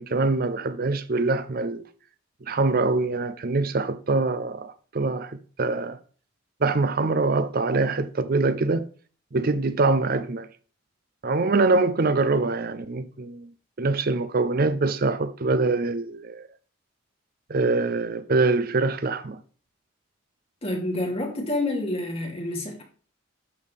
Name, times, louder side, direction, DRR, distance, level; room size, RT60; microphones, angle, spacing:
voice 1, 0.0-1.8 2.5-6.0 6.6-8.9 9.3-10.5 11.2-13.5 13.8-16.4 17.5-19.4, right 3 dB, 50° right, 0.6 m, -24 dB
voice 2, 20.6-22.8, left 1 dB, 30° left, 2.9 m, -28 dB
11.5 x 7.1 x 3.4 m
head